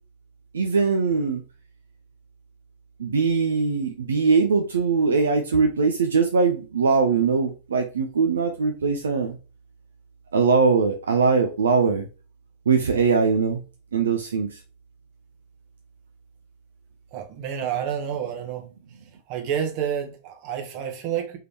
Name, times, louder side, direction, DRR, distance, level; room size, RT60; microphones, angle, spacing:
voice 1, 0.5-1.4 3.0-9.4 10.3-12.1 12.7-13.6 13.9-14.6, right 5 dB, 70° right, 0.4 m, -21 dB
voice 2, 17.1-18.7 19.3-21.4, right 9 dB, 45° right, 1.1 m, -29 dB
3.7 x 3.3 x 2.8 m
figure-of-eight pair, 90°, 0 cm